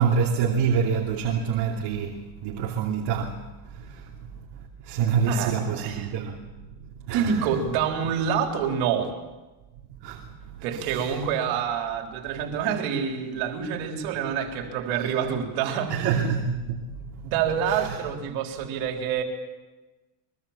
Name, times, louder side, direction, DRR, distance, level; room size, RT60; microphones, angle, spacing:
voice 1, 0.0-4.1 4.8-6.7 7.1-7.4 10.0-11.1 15.9-17.3 17.6-18.0, right 6 dB, 55° right, 2.9 m, -27 dB
voice 2, 5.3-6.2 7.1-9.1 10.6-16.0 17.2-19.2, right 7 dB, 70° right, 3.9 m, -27 dB
24.0 x 23.0 x 7.3 m
cardioid pair, 130°, 48 cm